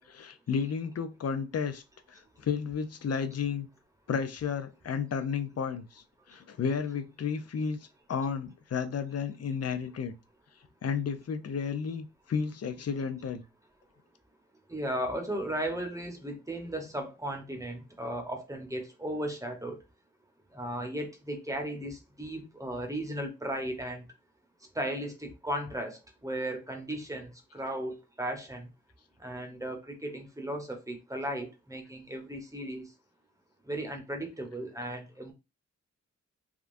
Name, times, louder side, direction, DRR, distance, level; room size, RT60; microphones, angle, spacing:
voice 1, 0.1-1.8 2.1-3.7 4.1-7.8 8.1-10.1 10.8-13.4, left 6 dB, 55° left, 0.6 m, -32 dB
voice 2, 14.7-19.8 20.5-24.0 24.7-28.7 29.2-32.8 33.7-35.3, right 1 dB, 10° right, 1.0 m, -36 dB
3.6 x 2.3 x 2.6 m
cardioid pair, 60°, 31 cm